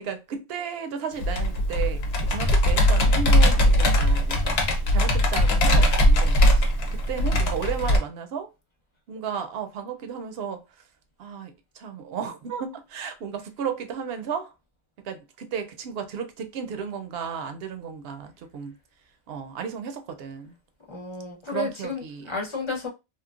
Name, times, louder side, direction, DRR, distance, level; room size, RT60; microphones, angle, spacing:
voice 1, 0.0-8.5 9.1-10.6 11.2-14.5 15.0-18.8 19.3-20.6 21.5-22.3, right 7 dB, 75° right, 0.8 m, -34 dB
Computer keyboard, 1.2-8.0, left 1 dB, 85° left, 0.9 m, -20 dB
voice 2, 20.9-22.9, left 4 dB, 30° left, 0.7 m, -32 dB
2.9 x 2.2 x 2.3 m
omnidirectional pair, 1.0 m